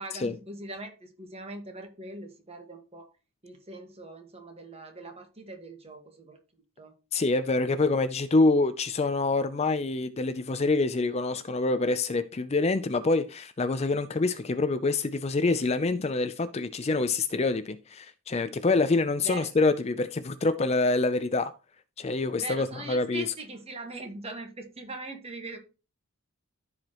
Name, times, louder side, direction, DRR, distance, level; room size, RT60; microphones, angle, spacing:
voice 1, 0.0-3.1 3.4-6.4 6.8-6.9 19.2-19.5 22.4-25.6, right 2 dB, 25° right, 1.5 m, -41 dB
voice 2, 7.1-21.5 22.0-23.3, left 3 dB, 30° left, 0.4 m, -26 dB
14.5 x 4.9 x 3.0 m
head